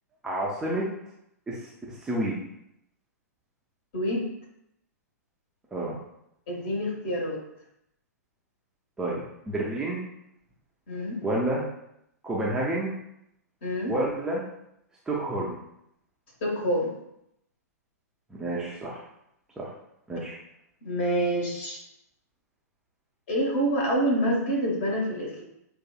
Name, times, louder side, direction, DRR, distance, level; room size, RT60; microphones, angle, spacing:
voice 1, 0.2-0.9 1.5-2.4 5.7-6.0 9.0-10.0 11.2-11.7 12.2-12.9 13.9-14.4 15.1-15.6 18.3-19.0 19.6-19.7 20.1-20.3, right 1 dB, 5° right, -5 dB, 0.5 m, -29 dB
voice 2, 3.9-4.3 6.5-7.4 10.9-11.2 13.6-13.9 16.4-16.9 20.8-21.8 23.3-25.4, equal, 40° left, -2 dB, 1.6 m, -27 dB
6.0 x 2.6 x 2.4 m, 0.78 s
figure-of-eight pair, 110°, 9 cm